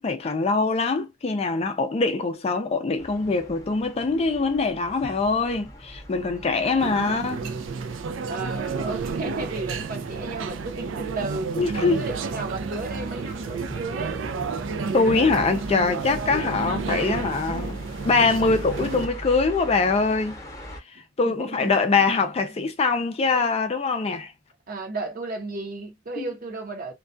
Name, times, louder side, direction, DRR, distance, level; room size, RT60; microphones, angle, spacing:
voice 1, 0.0-7.4 11.6-12.0 14.9-20.4 20.9-24.3 26.2-26.3, left 4 dB, 30° left, 0.4 m, -23 dB
sound 1, 3.0-20.8, equal, 15° left, 0.8 m, -41 dB
sound 2, 6.8-19.1, right 5 dB, 75° right, 0.4 m, -31 dB
voice 2, 8.3-11.5 11.9-14.2 21.2-21.8 24.7-26.9, right 2 dB, 45° right, 0.7 m, -33 dB
2.2 x 2.2 x 2.5 m
head